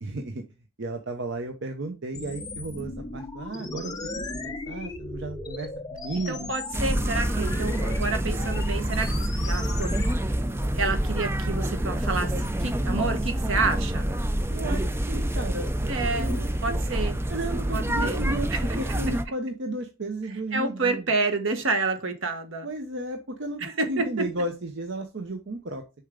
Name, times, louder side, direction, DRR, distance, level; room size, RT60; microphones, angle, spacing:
voice 1, 0.0-0.4 0.8-4.0 4.3-6.5 14.5-15.9 16.2-16.8 17.3-18.5 18.8-21.0 22.6-25.8, right 2 dB, 60° right, 0.8 m, -34 dB
sound 1, 2.1-10.1, left 2 dB, 20° left, 0.9 m, -36 dB
voice 2, 6.1-9.2 9.5-10.0 10.7-14.1 15.9-16.3 16.6-17.2 17.7-18.2 18.5-19.1 20.5-22.7 23.6-24.3, right 3 dB, 75° right, 1.3 m, -29 dB
sound 2, 6.7-19.3, right 1 dB, 10° right, 0.4 m, -27 dB
6.6 x 4.5 x 3.7 m
head